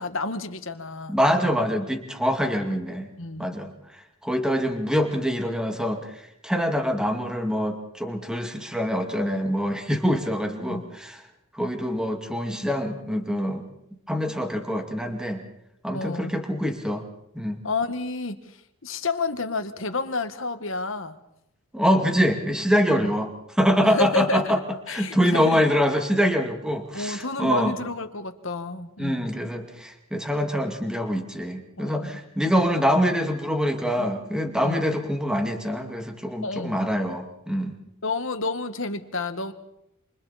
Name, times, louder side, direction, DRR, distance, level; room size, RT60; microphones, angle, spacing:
voice 1, 0.0-1.2 3.2-3.5 10.7-10.9 15.9-16.3 17.6-18.6 18.8-21.2 22.9-23.1 23.8-25.7 26.9-29.2 31.8-32.1 34.0-34.1 34.6-34.8 36.4-36.9 38.0-39.5, left 3 dB, 60° left, 9 dB, 1.8 m, -30 dB
voice 2, 1.1-3.1 3.4-3.7 4.2-11.2 11.5-13.7 14.1-15.4 15.8-17.0 17.3-17.6 21.7-23.3 23.6-24.6 24.9-27.7 29.0-37.7, equal, 5° right, 4 dB, 2.3 m, -25 dB
28.5 x 27.5 x 4.3 m, 0.78 s
head